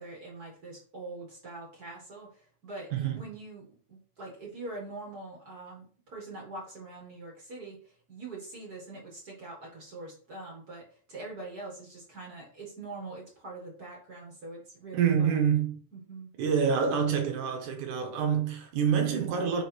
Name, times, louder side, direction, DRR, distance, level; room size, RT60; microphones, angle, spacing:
voice 1, 0.0-15.5 15.9-16.3, right 2 dB, 45° right, 1.2 m, -44 dB
voice 2, 2.9-3.2 14.9-15.8 16.4-19.6, right 7 dB, 75° right, 1.9 m, -27 dB
5.8 x 5.0 x 4.5 m
omnidirectional pair, 5.0 m